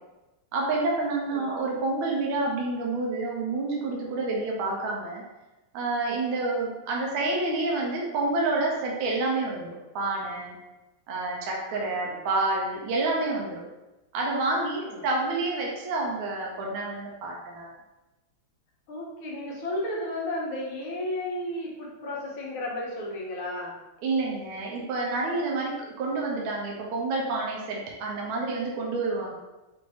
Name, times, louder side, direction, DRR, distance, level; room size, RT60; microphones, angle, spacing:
voice 1, 0.5-5.2 5.7-10.6 11.1-13.6 14.1-17.7 24.0-29.3, right 2 dB, 75° right, -2 dB, 1.5 m, -28 dB
voice 2, 14.7-15.0 18.9-23.8, left 1 dB, 75° left, -3 dB, 1.8 m, -33 dB
5.1 x 2.6 x 3.4 m, 1.0 s
omnidirectional pair, 2.4 m